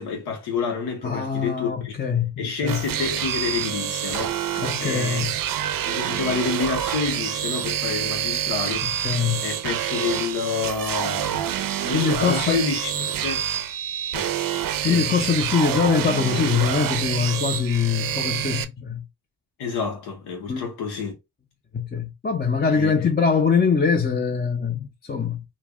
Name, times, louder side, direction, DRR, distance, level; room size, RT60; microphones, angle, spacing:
voice 1, 0.0-1.9 2.4-5.2 5.9-11.5 11.8-13.5 14.1-14.3 14.8-15.1 19.6-21.2 22.7-23.1, left 5 dB, 80° left, 0.7 m, -29 dB
voice 2, 1.0-2.8 4.6-5.3 9.0-9.4 11.9-12.6 14.8-19.0 20.5-20.7 21.7-25.4, left 6 dB, 25° left, 0.5 m, -23 dB
sound 1, 2.7-18.6, right 10 dB, 60° right, 0.5 m, -27 dB
2.2 x 2.0 x 3.5 m
supercardioid pair, 50°, 38 cm